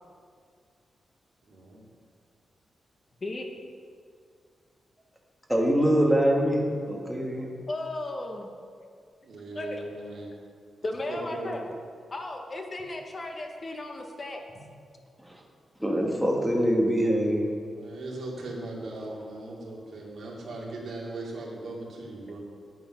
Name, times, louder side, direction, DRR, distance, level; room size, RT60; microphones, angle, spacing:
voice 1, 1.5-1.8 9.2-10.3 11.1-11.5 17.7-22.4, right 2 dB, 60° right, -3 dB, 2.8 m, -38 dB
voice 2, 5.5-7.5 15.8-17.5, equal, ahead, -2 dB, 1.4 m, -24 dB
voice 3, 7.7-8.5 9.5-9.8 10.8-11.6 12.1-14.4, left 2 dB, 30° left, 3 dB, 1.1 m, -35 dB
10.0 x 9.3 x 6.1 m, 2.2 s
wide cardioid pair, 130°, 0 cm